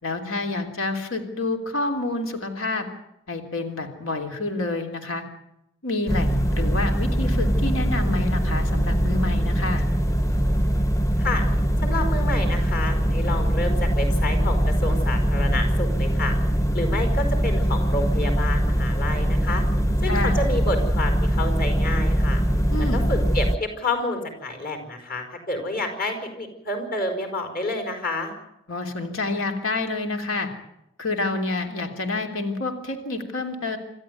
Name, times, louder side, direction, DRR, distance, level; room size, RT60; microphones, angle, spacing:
voice 1, 0.0-2.9 3.3-5.2 5.8-9.8 20.1-20.4 22.7-23.1 28.7-30.5 31.0-33.8, left 2 dB, 85° left, 5 dB, 3.3 m, -28 dB
sound 1, 6.1-23.6, equal, 15° left, 0.9 m, -22 dB
voice 2, 11.8-16.3 16.7-19.6 20.0-22.4 22.9-28.3, left 2 dB, 45° left, 6 dB, 5.2 m, -29 dB
27.0 x 13.5 x 9.4 m, 0.83 s
head